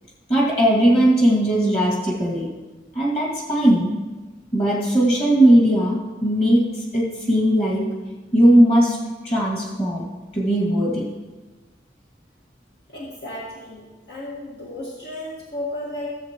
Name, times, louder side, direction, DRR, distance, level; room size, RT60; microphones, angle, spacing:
voice 1, 0.3-2.5 2.9-3.9 4.5-7.8 8.3-9.0 9.2-11.0, right 1 dB, 35° left, -4 dB, 2.2 m, -18 dB
voice 2, 12.9-16.2, left 1 dB, 70° left, -5 dB, 1.8 m, -33 dB
16.0 x 7.7 x 3.0 m, 1.2 s
head